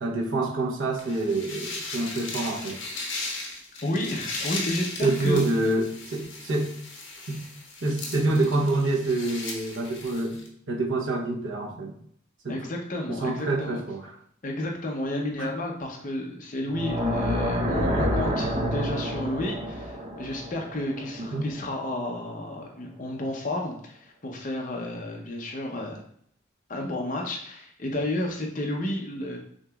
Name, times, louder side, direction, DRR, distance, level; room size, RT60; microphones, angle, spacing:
voice 1, 0.0-2.8 5.0-6.7 7.3-7.5 7.8-12.0 12.4-12.6 13.1-14.1 15.4-15.5 21.2-21.5, right 2 dB, 70° right, -2 dB, 0.8 m, -27 dB
sound 1, 1.0-10.5, left 3 dB, 65° left, 1.0 m, -37 dB
voice 2, 3.8-5.5 12.5-13.8 14.4-26.0 26.7-29.4, left 1 dB, 40° left, 1 dB, 0.7 m, -31 dB
sound 2, 16.7-21.8, equal, 30° right, 0.5 m, -28 dB
6.3 x 2.9 x 2.3 m, 0.65 s
head